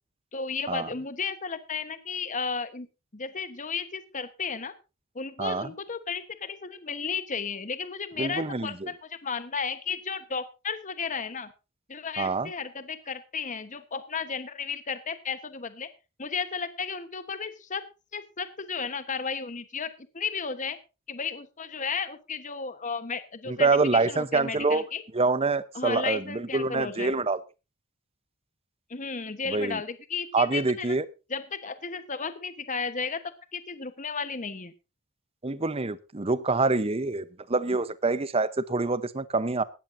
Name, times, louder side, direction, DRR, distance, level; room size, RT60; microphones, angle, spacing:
voice 1, 0.3-2.9 3.1-4.7 5.1-11.5 11.9-15.9 16.2-17.8 18.1-20.8 21.1-25.0 25.7-27.1 28.9-31.0 31.3-33.2 33.5-34.7, left 5 dB, 35° left, 1.1 m, -34 dB
voice 2, 5.4-5.7 8.2-8.9 12.2-12.5 23.5-24.9 25.1-27.4 29.5-29.8 30.3-31.0 35.4-39.6, right 3 dB, 25° right, 0.8 m, -26 dB
18.0 x 13.5 x 2.6 m
head